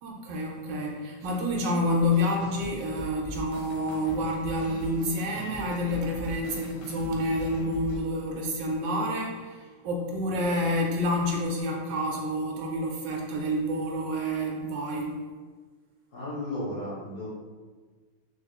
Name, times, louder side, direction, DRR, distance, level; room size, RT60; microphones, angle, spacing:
voice 1, 0.0-15.2, equal, 75° right, 0 dB, 1.1 m, -28 dB
sound 1, 2.1-8.0, left 2 dB, 90° left, 1.5 m, -42 dB
voice 2, 16.1-17.3, left 1 dB, 55° left, -11 dB, 1.3 m, -34 dB
4.9 x 2.3 x 2.2 m, 1.4 s
omnidirectional pair, 2.2 m